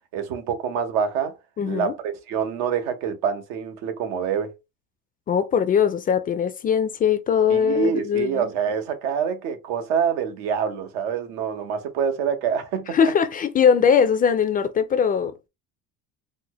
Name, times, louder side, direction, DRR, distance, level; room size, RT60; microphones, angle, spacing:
voice 1, 0.1-1.3 1.6-4.5 7.5-13.0, right 7 dB, 85° right, 1.0 m, -26 dB
voice 2, 1.6-1.9 5.3-8.4 12.9-15.3, left 7 dB, 25° left, 0.4 m, -20 dB
4.2 x 2.1 x 2.9 m
cardioid pair, 125°, 33 cm